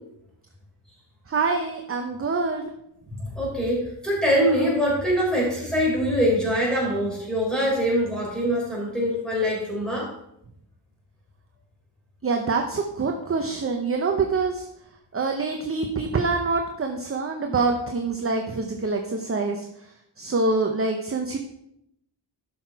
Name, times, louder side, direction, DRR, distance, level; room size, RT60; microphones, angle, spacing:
voice 1, 1.3-2.7 12.2-14.6 15.1-19.6 20.2-21.4, right 3 dB, 30° right, 3 dB, 0.7 m, -25 dB
voice 2, 3.1-10.1, equal, ahead, -5 dB, 3.8 m, -23 dB
12.0 x 6.0 x 4.6 m, 0.78 s
wide cardioid pair, 180°, 46 cm